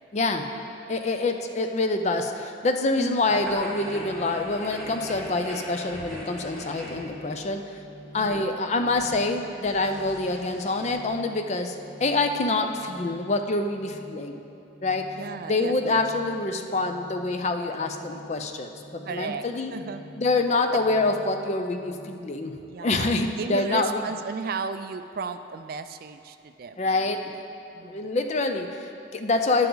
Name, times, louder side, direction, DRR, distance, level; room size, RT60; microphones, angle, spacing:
voice 1, 0.1-0.5 0.9-7.8 8.1-14.4 14.8-15.2 15.5-19.7 20.2-24.1 26.8-27.3 27.8-29.7, left 2 dB, 35° left, 6 dB, 0.4 m, -26 dB
voice 2, 3.0-3.3 8.2-8.6 15.1-16.0 19.1-20.1 20.7-20.8 22.7-27.1 27.7-28.1, right 5 dB, 50° right, 10 dB, 0.3 m, -35 dB
sound 1, 3.2-22.1, left 1 dB, 85° left, 1.7 m, -48 dB
sound 2, 3.4-10.9, equal, ahead, 1.9 m, -41 dB
10.5 x 6.9 x 3.9 m, 2.7 s
head